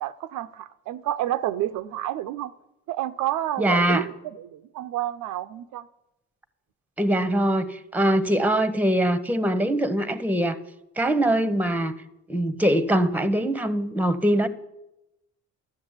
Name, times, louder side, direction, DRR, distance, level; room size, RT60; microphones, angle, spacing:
voice 1, 0.0-2.5 2.9-5.9 8.3-8.5, right 13 dB, 85° right, 0.6 m, -30 dB
voice 2, 3.6-4.0 7.0-10.6 11.0-11.9 12.3-14.5, right 1 dB, 5° right, 0.8 m, -22 dB
12.5 x 7.1 x 8.0 m
cardioid pair, 90°, 30 cm